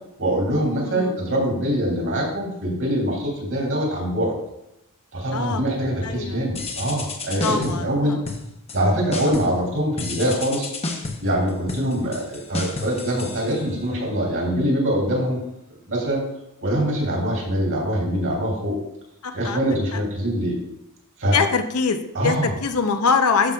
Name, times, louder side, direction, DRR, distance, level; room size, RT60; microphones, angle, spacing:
voice 1, 0.2-4.3 5.1-8.2 8.7-10.7 11.2-15.4 15.9-16.2 16.6-18.8 19.3-20.5 21.2-21.4 22.1-22.5, equal, 60° right, -2 dB, 3.0 m, -23 dB
voice 2, 0.8-1.2 5.3-5.6 6.0-6.4 7.4-8.2 19.2-20.0 21.3-23.5, left 5 dB, 75° left, 7 dB, 0.7 m, -23 dB
sound 1, 6.5-7.9 8.2-8.8 9.1-9.6 10.0-14.0, left 3 dB, 30° left, 0.9 m, -32 dB
12.0 x 6.0 x 2.4 m, 0.86 s
head